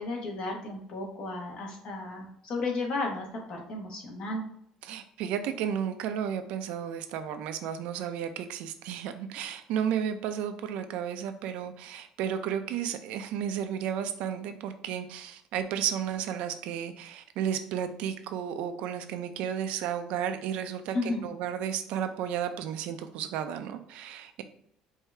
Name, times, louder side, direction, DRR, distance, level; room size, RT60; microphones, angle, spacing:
voice 1, 0.0-4.4 20.9-21.3, left 2 dB, 50° left, 0 dB, 1.3 m, -33 dB
voice 2, 4.8-24.4, right 9 dB, 75° right, 9 dB, 0.5 m, -33 dB
4.8 x 2.7 x 3.3 m, 0.69 s
cardioid pair, 135°, 2 cm